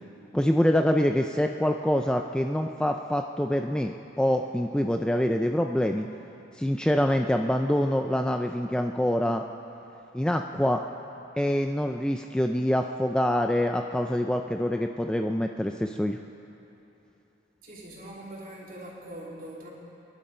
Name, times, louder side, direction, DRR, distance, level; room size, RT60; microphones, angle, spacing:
voice 1, 0.3-6.1 6.6-9.4 10.1-10.8 11.4-16.2, equal, 5° left, 4 dB, 0.3 m, -25 dB
voice 2, 17.6-19.7, right 1 dB, 45° right, -5 dB, 3.4 m, -42 dB
27.0 x 11.5 x 4.4 m, 3.0 s
head